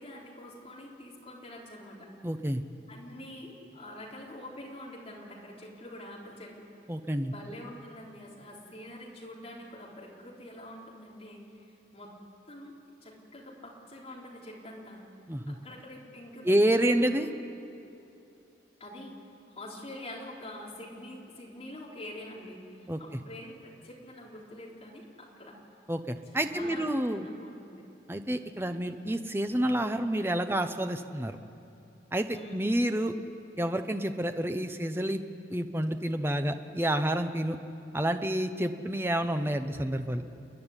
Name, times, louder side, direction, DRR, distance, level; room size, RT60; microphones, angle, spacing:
voice 1, 0.0-2.1 2.9-6.7 7.2-11.7 11.9-12.1 12.5-12.7 13.0-15.0 15.5-17.0 18.8-19.1 19.5-25.6 26.3-27.8 32.3-32.6, left 1 dB, 30° left, -4 dB, 3.8 m, -45 dB
voice 2, 2.2-2.6 6.9-7.3 15.3-15.6 16.4-17.3 22.9-23.0 25.9-27.3 28.1-31.4 32.1-33.1 33.6-35.2 35.5-37.6 37.9-40.2, right 1 dB, 10° right, 7 dB, 0.8 m, -29 dB
29.0 x 11.0 x 9.9 m, 2.8 s
head